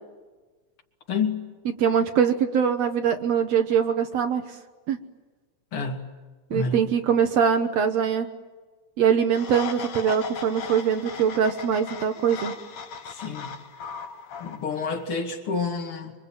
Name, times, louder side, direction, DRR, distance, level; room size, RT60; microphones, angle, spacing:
voice 1, 1.1-1.5 5.7-6.0 6.5-6.8 13.1-13.5 14.4-16.1, left 5 dB, 45° left, 4 dB, 3.3 m, -29 dB
voice 2, 1.8-4.4 4.9-5.0 6.5-8.3 9.0-12.5, right 7 dB, 65° right, 6 dB, 2.1 m, -22 dB
sound 1, 9.3-15.0, left 6 dB, 60° left, 2.6 m, -38 dB
26.5 x 24.5 x 9.0 m, 1.3 s
omnidirectional pair, 3.5 m